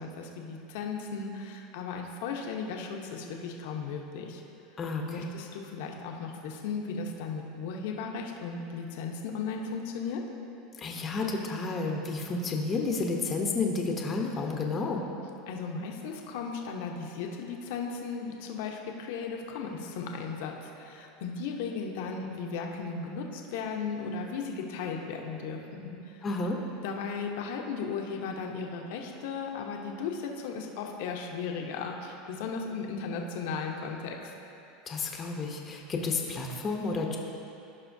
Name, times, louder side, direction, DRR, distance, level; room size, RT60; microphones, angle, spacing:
voice 1, 0.0-4.4 5.1-10.2 15.5-26.2 26.8-34.3, left 5 dB, 70° left, 1 dB, 0.9 m, -36 dB
voice 2, 4.8-5.3 10.8-15.0 26.2-26.6 34.9-37.2, left 3 dB, 25° left, 0 dB, 0.9 m, -31 dB
15.0 x 5.5 x 2.7 m, 2.8 s
supercardioid pair, 125°, 0 cm